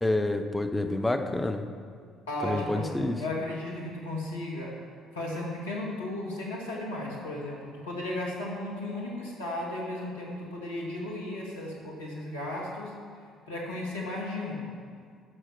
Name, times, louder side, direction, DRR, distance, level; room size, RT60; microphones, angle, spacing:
voice 1, 0.0-1.6 2.4-3.2, left 2 dB, 10° left, 6 dB, 1.0 m, -28 dB
voice 2, 2.3-4.7 5.1-12.9 13.5-14.6, left 1 dB, 80° left, -3 dB, 2.1 m, -35 dB
11.0 x 6.6 x 6.2 m, 2.2 s
figure-of-eight pair, 50°, 0 cm